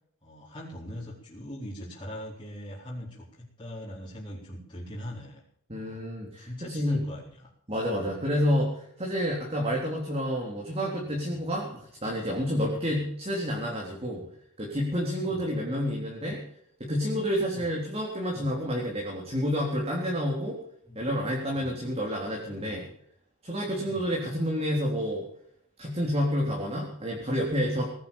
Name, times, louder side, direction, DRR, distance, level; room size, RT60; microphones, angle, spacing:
voice 1, 0.2-5.4 5.7-6.0 6.4-7.3 7.9-8.2 14.1-14.2 15.3-15.5 17.5-17.7 18.3-18.5 20.9-21.0 21.6-21.8 22.5-22.8 23.9-24.1, equal, 20° left, -6 dB, 4.4 m, -42 dB
voice 2, 5.7-7.0 7.7-14.2 14.6-16.4 16.8-20.6 21.0-22.9 23.4-25.3 25.8-27.9, equal, 30° right, -2 dB, 3.7 m, -29 dB
19.0 x 10.5 x 7.2 m, 0.68 s
head